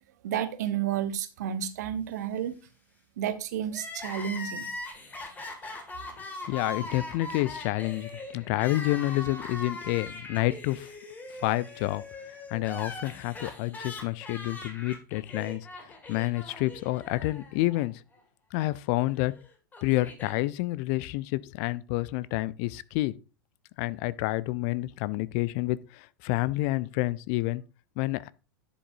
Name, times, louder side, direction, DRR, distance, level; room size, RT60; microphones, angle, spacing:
voice 1, 0.2-2.6 3.2-4.7, right 9 dB, 60° right, 1.0 m, -31 dB
Crying sobbing, 3.7-17.9 18.1-18.2 19.2-20.4, left 2 dB, 15° left, 2.1 m, -41 dB
voice 2, 6.5-10.9 11.4-12.0 12.5-15.7 16.1-18.0 18.5-19.3 19.8-23.1 23.8-27.6 28.0-28.3, left 18 dB, 45° left, 0.5 m, -29 dB
11.0 x 7.3 x 2.6 m
figure-of-eight pair, 90°, 11 cm